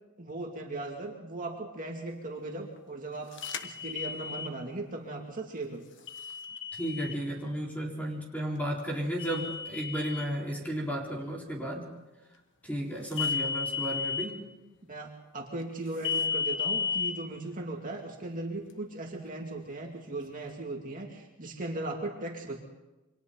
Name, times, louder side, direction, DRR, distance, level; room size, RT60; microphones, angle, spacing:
voice 1, 0.2-3.3 3.6-6.1 14.8-22.6, right 2 dB, 40° right, 0 dB, 2.6 m, -38 dB
sound 1, 3.4-4.5 6.1-7.2 9.2-10.3 13.1-14.3 16.0-17.1, left 6 dB, 60° left, 1.3 m, -33 dB
voice 2, 6.7-11.9 12.6-14.4, equal, 5° left, -2 dB, 4.5 m, -33 dB
29.0 x 25.0 x 4.1 m, 1.1 s
head